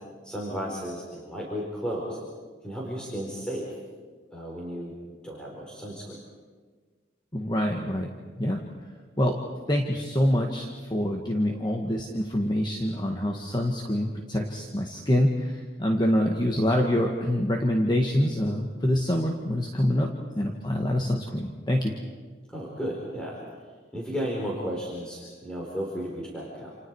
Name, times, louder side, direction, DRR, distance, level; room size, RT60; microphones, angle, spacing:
voice 1, 0.2-2.2 2.6-3.7 4.3-4.9 5.2-6.2 22.5-23.4 23.9-26.8, equal, 5° left, -4 dB, 4.6 m, -34 dB
voice 2, 7.3-8.1 8.4-8.6 9.2-9.4 9.7-20.1 20.4-22.0, left 1 dB, 25° left, 1 dB, 1.8 m, -25 dB
29.0 x 29.0 x 4.8 m, 1.5 s
head